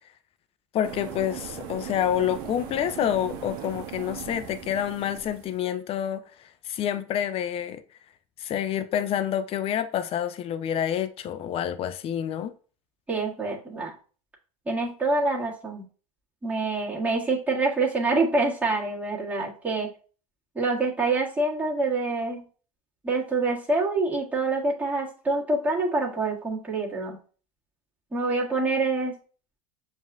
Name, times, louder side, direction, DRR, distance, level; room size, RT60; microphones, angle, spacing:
voice 1, 0.7-7.8 8.4-12.5, left 10 dB, 30° left, 0.5 m, -28 dB
sound 1, 0.8-5.6, right 9 dB, 45° right, 0.7 m, -39 dB
voice 2, 13.1-13.9 14.6-15.8 16.4-19.9 20.5-22.4 23.0-27.2 28.1-29.1, right 3 dB, 10° right, 1.6 m, -26 dB
7.1 x 2.6 x 2.3 m
figure-of-eight pair, 85°, 20 cm